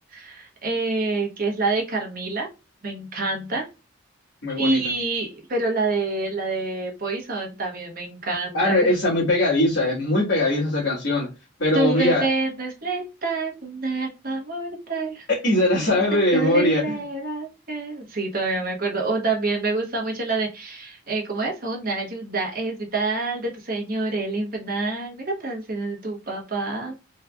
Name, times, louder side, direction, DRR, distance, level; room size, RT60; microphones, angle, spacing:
voice 1, 0.1-2.5 2.8-3.6 4.6-8.9 11.7-15.3 15.7-27.0, right 3 dB, 45° right, 0 dB, 1.0 m, -27 dB
voice 2, 4.4-4.8 8.5-11.3 11.6-12.3 15.3-17.0, left 1 dB, 65° left, -8 dB, 1.5 m, -21 dB
3.7 x 3.1 x 2.3 m, 0.28 s
head